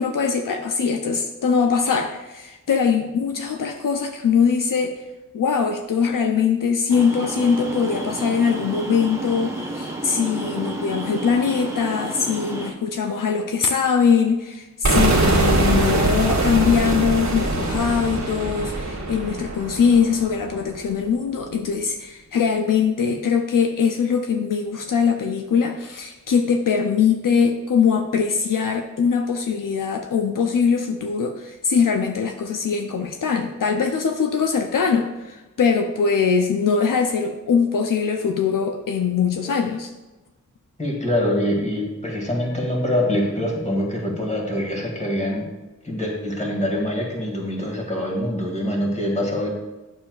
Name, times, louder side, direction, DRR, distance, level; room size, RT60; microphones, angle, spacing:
voice 1, 0.0-4.9 5.3-39.9, left 6 dB, 75° left, 4 dB, 0.6 m, -22 dB
sound 1, 6.9-12.7, right 2 dB, 10° right, 1.2 m, -31 dB
sound 2, 14.8-20.7, right 2 dB, 60° right, 1.7 m, -22 dB
voice 2, 40.8-45.5 45.8-49.5, left 1 dB, 20° left, -1 dB, 2.0 m, -24 dB
8.8 x 7.1 x 2.4 m, 1.1 s
wide cardioid pair, 65°, 32 cm